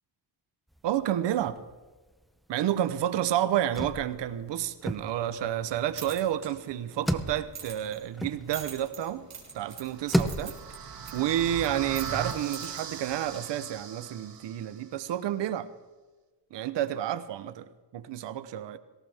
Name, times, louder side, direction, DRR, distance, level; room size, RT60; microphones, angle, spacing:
sound 1, 0.7-2.0 2.2-2.3 2.6-9.0 9.5-10.7, equal, ahead, 0.7 m, -34 dB
voice 1, 0.8-1.6 2.5-9.3 9.5-10.6 11.1-15.7 16.5-18.8, right 11 dB, 85° right, 0.9 m, -30 dB
sound 2, 5.7-13.7, right 5 dB, 40° right, 4.0 m, -46 dB
sound 3, 9.7-14.8, right 7 dB, 55° right, 1.7 m, -39 dB
18.5 x 17.5 x 3.5 m
cardioid pair, 120°, 42 cm